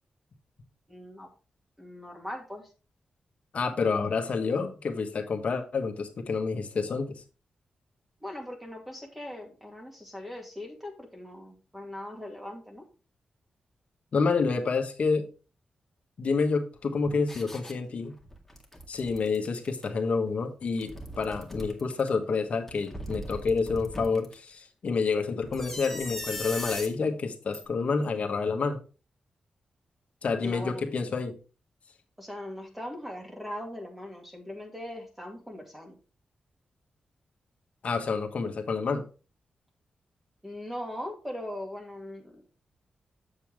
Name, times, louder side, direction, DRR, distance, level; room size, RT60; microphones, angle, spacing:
voice 1, 0.9-1.3 1.8-2.6 8.2-12.9 30.4-30.8 32.2-35.9 40.4-42.4, left 1 dB, 10° right, 1 dB, 2.4 m, -40 dB
voice 2, 3.5-7.2 14.1-15.3 16.2-18.1 18.9-28.8 30.2-31.3 37.8-39.0, left 4 dB, 60° left, 5 dB, 1.4 m, -28 dB
sound 1, 17.3-17.7 18.2-19.8 20.6-22.1 22.7-24.3 25.4-26.9 27.5-27.6, left 1 dB, 10° left, 2.0 m, -39 dB
7.7 x 7.0 x 3.5 m, 0.34 s
cardioid pair, 85°, 3 cm